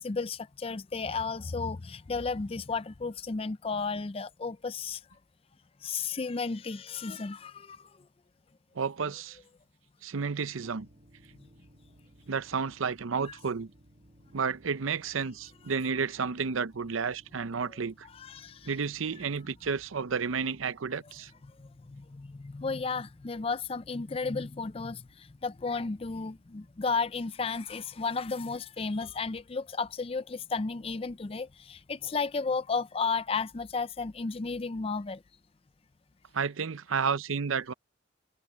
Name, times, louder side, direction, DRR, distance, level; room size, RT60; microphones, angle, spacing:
voice 1, 0.0-5.0 5.8-7.9 11.4-11.5 18.1-18.7 21.4-35.2, left 4 dB, 30° left, 0.4 m, -33 dB
voice 2, 8.8-9.4 10.0-10.9 12.3-13.7 14.3-18.1 18.6-21.3 36.3-37.7, right 5 dB, 85° right, 0.6 m, -31 dB
sound 1, 10.6-28.7, equal, 40° right, 1.9 m, -61 dB
head